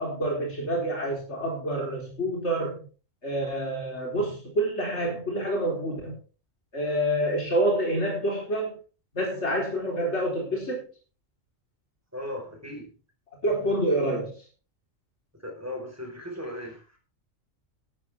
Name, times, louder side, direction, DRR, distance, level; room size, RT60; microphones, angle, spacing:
voice 1, 0.0-2.8 3.2-6.2 6.7-8.8 9.1-10.8 13.4-14.3, right 1 dB, 60° left, 0 dB, 4.3 m, -27 dB
voice 2, 12.1-12.9 15.4-17.0, left 1 dB, 10° right, 3 dB, 4.5 m, -37 dB
13.0 x 12.0 x 3.5 m, 0.35 s
omnidirectional pair, 1.3 m